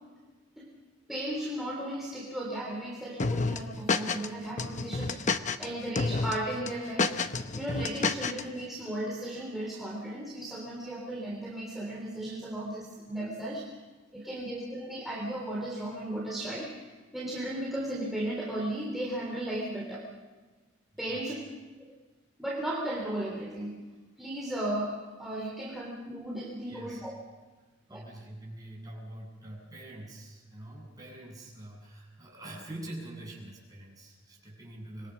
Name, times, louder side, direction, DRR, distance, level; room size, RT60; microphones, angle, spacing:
voice 1, 1.1-5.2 5.6-7.2 7.5-13.6 14.1-16.7 17.1-20.0 21.0-21.4 21.8-21.9 22.4-23.7 24.2-27.1 27.9-28.0, right 1 dB, ahead, -4 dB, 3.3 m, -35 dB
sound 1, 3.2-4.3 4.6-5.7 6.0-6.3 6.7-8.4, left 4 dB, 40° left, 0.9 m, -29 dB
voice 2, 20.9-21.4 26.6-27.1 27.9-35.1, right 1 dB, 20° right, -2 dB, 8.0 m, -45 dB
25.5 x 22.5 x 6.2 m, 1.3 s
head